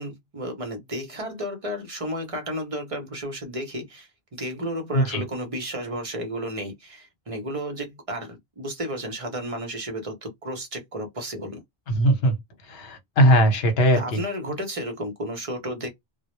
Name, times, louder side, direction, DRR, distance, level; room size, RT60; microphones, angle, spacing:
voice 1, 0.0-11.6 14.0-15.9, equal, 40° right, 0.6 m, -32 dB
voice 2, 11.9-12.4 12.7-14.2, equal, 75° left, 1.0 m, -19 dB
2.1 x 2.0 x 2.9 m
omnidirectional pair, 1.1 m